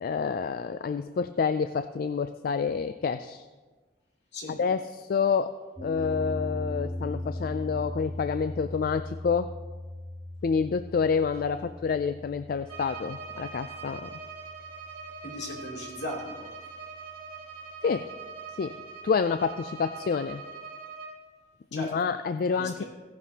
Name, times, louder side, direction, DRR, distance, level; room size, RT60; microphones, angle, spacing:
voice 1, 0.0-3.4 4.6-5.5 5.8-9.5 10.4-14.1 17.8-18.1 18.6-18.7 19.0-20.4 21.7-22.8, left 5 dB, 55° left, 11 dB, 0.3 m, -28 dB
sound 1, 5.7-16.0, left 1 dB, 10° right, 2.5 m, -39 dB
Bowed string instrument, 12.6-21.2, right 5 dB, 50° right, 2.8 m, -42 dB
voice 2, 15.2-16.5 21.7-21.9 22.5-22.8, left 1 dB, 75° left, -3 dB, 3.0 m, -37 dB
16.0 x 11.0 x 2.9 m, 1.3 s
head